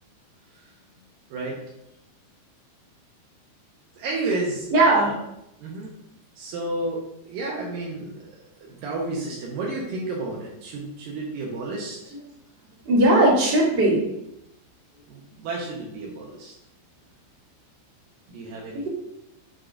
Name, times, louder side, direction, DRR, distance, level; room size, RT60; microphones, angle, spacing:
voice 1, 4.0-5.1 5.6-6.0 6.4-8.3 8.6-12.1 15.1-16.5 18.3-18.9, right 2 dB, 90° right, -3 dB, 1.9 m, -31 dB
voice 2, 4.7-5.1 12.8-14.1 18.7-18.9, right 1 dB, 35° right, -8 dB, 2.1 m, -18 dB
8.2 x 5.0 x 2.5 m, 0.81 s
omnidirectional pair, 5.4 m